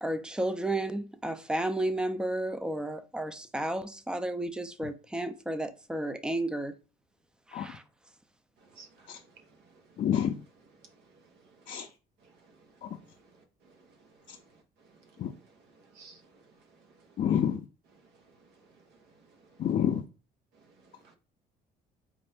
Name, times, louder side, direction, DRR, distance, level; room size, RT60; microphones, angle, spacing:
voice 1, 0.0-6.7 7.5-7.8, right 1 dB, 5° right, 0.4 m, -32 dB
voice 2, 8.6-9.2 12.2-12.3 15.0-16.2 19.5-19.6, right 4 dB, 80° right, 0.9 m, -56 dB
voice 3, 10.0-10.3 11.7-11.9 15.2-15.3 17.2-17.6 19.6-20.0, left 9 dB, 50° left, 0.5 m, -27 dB
4.3 x 2.5 x 3.4 m
cardioid pair, 110°, 17 cm